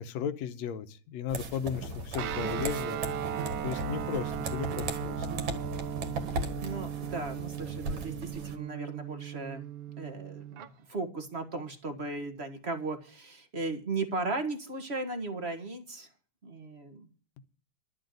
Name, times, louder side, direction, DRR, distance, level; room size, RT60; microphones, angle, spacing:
voice 1, 0.0-3.0 3.6-5.4, left 8 dB, 70° left, 11 dB, 2.1 m, -35 dB
sound 1, 1.3-8.6, right 2 dB, 55° right, 2.5 m, -37 dB
Guitar, 2.2-10.7, right 10 dB, 85° right, 2.3 m, -37 dB
voice 2, 6.3-9.6 10.0-16.1 16.4-17.1, right 3 dB, 30° right, 7 dB, 1.2 m, -37 dB
12.0 x 6.7 x 9.0 m, 0.39 s
omnidirectional pair, 3.3 m